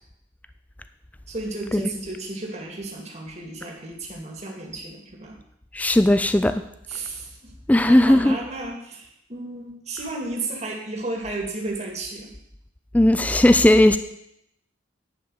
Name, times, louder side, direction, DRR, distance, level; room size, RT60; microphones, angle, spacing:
voice 1, 1.3-5.4 6.9-7.5 7.8-12.3, right 2 dB, 35° right, 0 dB, 2.2 m, -33 dB
voice 2, 5.7-6.5 7.7-8.4 12.9-14.0, left 1 dB, 10° left, 10 dB, 0.4 m, -16 dB
10.5 x 5.5 x 7.8 m, 0.77 s
head